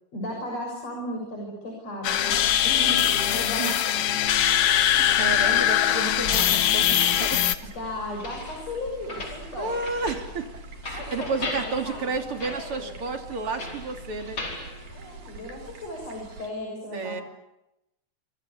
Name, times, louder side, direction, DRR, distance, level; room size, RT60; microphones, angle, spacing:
voice 1, 0.1-4.2 7.8-9.7 10.9-12.1 12.5-12.9 14.9-17.2, left 1 dB, 55° left, 0 dB, 7.6 m, -36 dB
sound 1, 2.0-7.6, left 11 dB, 75° left, 2.7 m, -22 dB
sound 2, 2.1-16.5, right 4 dB, 75° right, 4.1 m, -46 dB
voice 2, 4.8-7.6 9.6-10.5 10.8-14.4 16.9-17.2, right 4 dB, 45° right, 5 dB, 3.6 m, -31 dB
sound 3, 6.1-15.7, left 2 dB, 40° left, 5.6 m, -39 dB
27.0 x 25.5 x 8.5 m, 0.90 s
omnidirectional pair, 3.5 m